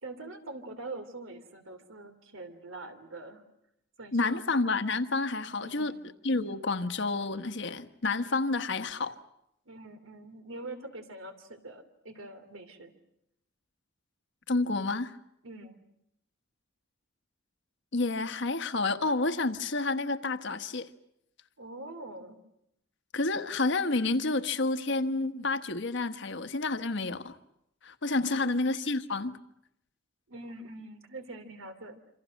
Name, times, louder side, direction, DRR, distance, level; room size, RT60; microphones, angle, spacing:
voice 1, 0.0-3.4 4.0-4.4 5.6-6.0 9.6-12.9 15.4-15.8 21.6-22.4 28.2-28.6 30.3-32.0, right 2 dB, 80° right, 3.0 m, -44 dB
voice 2, 4.1-5.9 6.2-9.2 14.5-15.1 17.9-20.9 23.1-27.4 27.8-29.4, left 3 dB, 60° left, 1.3 m, -29 dB
27.0 x 26.5 x 6.5 m
head